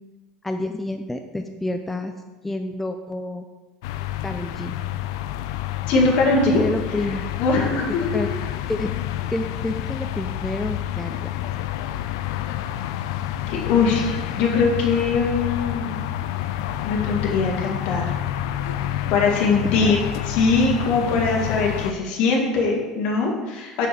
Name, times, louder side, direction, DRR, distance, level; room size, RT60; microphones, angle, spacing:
voice 1, 0.4-2.1 2.4-3.4 4.2-4.7 6.5-7.2 8.1-9.0 9.3-11.3 19.6-19.9, left 2 dB, 10° left, 6 dB, 0.4 m, -29 dB
sound 1, 3.8-21.9, left 12 dB, 85° left, 0.4 m, -29 dB
voice 2, 5.9-6.6 7.4-8.1 13.5-16.0 16.8-18.2 18.9-20.0 20.2-23.9, left 4 dB, 65° left, 0 dB, 1.9 m, -21 dB
6.9 x 6.3 x 4.3 m, 1.2 s
supercardioid pair, 125°, 2 cm